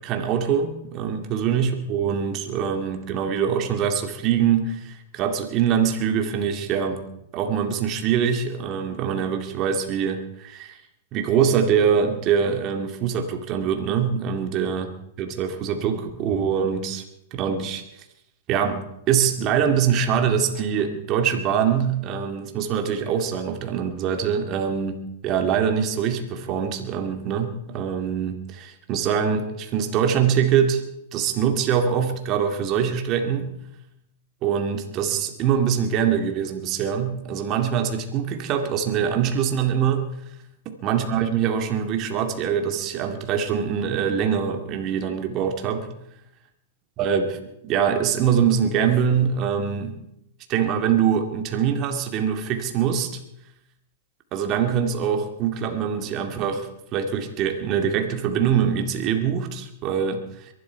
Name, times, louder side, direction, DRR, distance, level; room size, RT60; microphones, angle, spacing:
voice 1, 0.0-7.0 7.3-10.8 11.1-14.9 15.2-17.0 17.3-17.8 18.5-30.8 31.1-33.5 34.4-40.1 40.7-46.0 47.0-50.0 50.5-53.2 54.3-60.5, right 7 dB, 40° right, 5 dB, 2.3 m, -24 dB
22.5 x 12.0 x 4.7 m, 0.80 s
hypercardioid pair, 130°, 0 cm